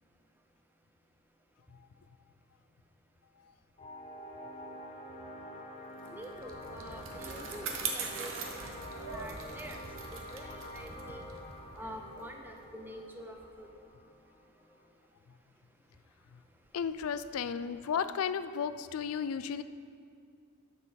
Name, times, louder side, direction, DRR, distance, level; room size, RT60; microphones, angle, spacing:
sound 1, 3.8-14.8, equal, 25° left, 1.0 m, -47 dB
Bicycle, 6.0-12.8, right 5 dB, 60° right, 1.0 m, -42 dB
voice 1, 6.1-8.3 8.6-8.8 9.1-9.8 10.1-11.2 11.8-13.7, equal, 10° right, 3 dB, 0.6 m, -47 dB
voice 2, 16.7-19.6, left 7 dB, 75° left, 12 dB, 0.4 m, -34 dB
12.5 x 6.8 x 4.1 m, 2.3 s
head